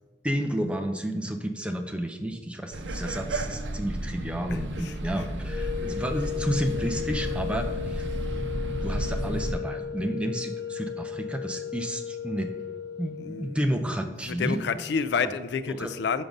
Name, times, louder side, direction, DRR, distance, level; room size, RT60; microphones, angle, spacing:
voice 1, 0.2-8.1 8.8-12.5 13.0-14.6 15.2-15.3 15.7-15.9, right 1 dB, 5° right, 5 dB, 0.5 m, -31 dB
sound 1, 2.7-9.5, right 1 dB, 85° right, 0.6 m, -32 dB
voice 2, 4.5-5.3 13.2-13.6 14.2-16.2, left 5 dB, 70° left, 13 dB, 0.3 m, -30 dB
sound 2, 5.4-13.6, left 10 dB, 20° left, 1.1 m, -35 dB
6.0 x 5.2 x 5.2 m, 1.2 s
head